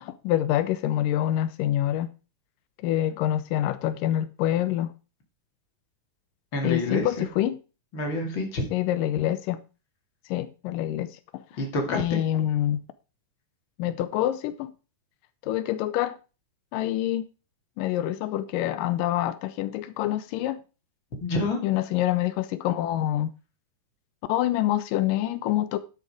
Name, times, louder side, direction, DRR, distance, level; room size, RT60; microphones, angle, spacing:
voice 1, 0.0-2.1 2.8-4.9 6.6-7.6 8.7-9.6 10.3-11.4 11.9-12.8 13.8-14.7 15.4-16.2 16.7-17.2 17.8-20.6 21.6-23.3 24.3-25.8, left 12 dB, 90° left, 2.4 m, -26 dB
voice 2, 6.5-7.1 7.9-8.7 11.6-12.2 21.2-21.6, left 2 dB, 40° left, 2.9 m, -27 dB
11.5 x 6.6 x 4.9 m
omnidirectional pair, 3.7 m